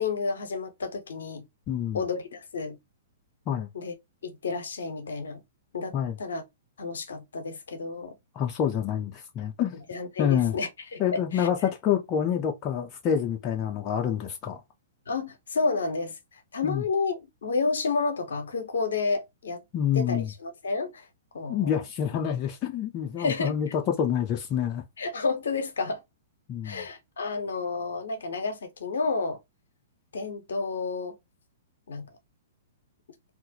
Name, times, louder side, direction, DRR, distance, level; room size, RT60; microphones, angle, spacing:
voice 1, 0.0-1.4 1.9-2.8 3.7-3.9 4.2-5.4 5.7-6.4 6.8-8.1 9.9-11.5 15.1-19.6 19.9-21.1 21.3-21.8 23.2-23.8 25.0-26.0 26.6-29.4 30.1-31.2 31.9-32.1, left 4 dB, 70° left, 0.6 m, -31 dB
voice 2, 1.7-2.0 3.5-3.7 5.9-6.2 8.3-9.8 10.2-10.6 11.0-14.6 16.6-16.8 19.7-20.3 21.5-24.8 26.5-26.9, left 9 dB, 30° left, 0.4 m, -27 dB
2.3 x 2.0 x 2.7 m
figure-of-eight pair, 110°, 0 cm